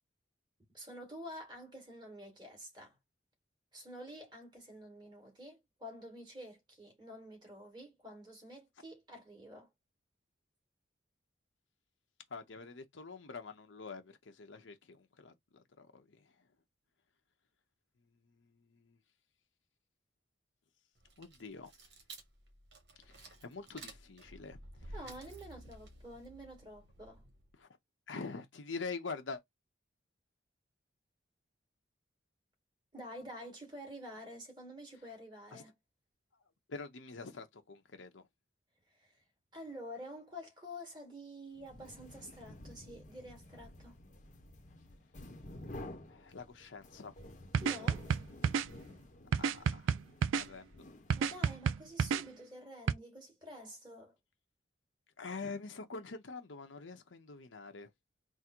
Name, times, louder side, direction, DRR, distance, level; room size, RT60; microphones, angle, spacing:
voice 1, 0.7-3.0 3.7-9.7 24.9-27.2 32.9-35.8 39.0-39.2 39.5-43.9 47.6-48.1 51.1-54.2, equal, 25° right, 1.9 m, -49 dB
voice 2, 12.3-16.3 18.3-19.0 21.2-21.7 23.0-25.0 27.6-27.7 28.1-29.4 35.5-35.6 36.7-38.3 46.1-47.1 49.4-50.0 50.3-50.8 55.2-57.9, left 4 dB, 80° left, 0.8 m, -46 dB
sound 1, 21.0-27.5, right 2 dB, 60° right, 1.2 m, -53 dB
sound 2, 41.6-51.5, left 1 dB, 40° left, 0.8 m, -52 dB
sound 3, 47.5-48.7 49.3-50.5 51.1-52.2 52.9-53.0, right 6 dB, 85° right, 0.3 m, -30 dB
3.7 x 2.1 x 4.4 m
head